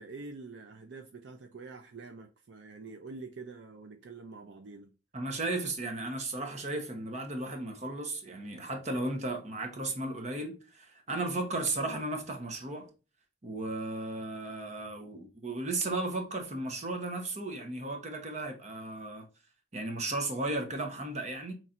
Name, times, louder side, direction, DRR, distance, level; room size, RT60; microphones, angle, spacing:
voice 1, 0.0-4.9, right 3 dB, 65° right, 0.5 m, -46 dB
voice 2, 5.1-12.9 13.4-19.3 19.7-21.5, right 2 dB, 35° right, 0.9 m, -35 dB
5.6 x 3.2 x 2.5 m
head